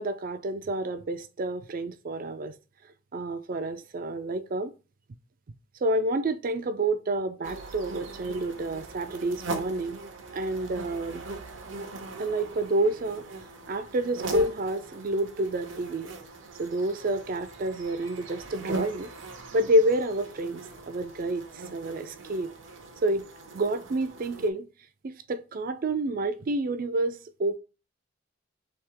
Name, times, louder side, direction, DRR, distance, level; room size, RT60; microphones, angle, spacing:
voice 1, 0.0-2.5 3.1-4.7 5.8-10.0 10.3-11.2 12.2-13.2 13.7-16.1 16.6-19.1 19.5-20.6 20.9-21.5 21.7-22.5 23.0-23.2 23.5-24.7 25.0-27.6, right 1 dB, 45° right, 0.4 m, -28 dB
sound 1, 7.4-24.5, right 3 dB, 75° right, 0.8 m, -40 dB
3.5 x 2.8 x 4.5 m
head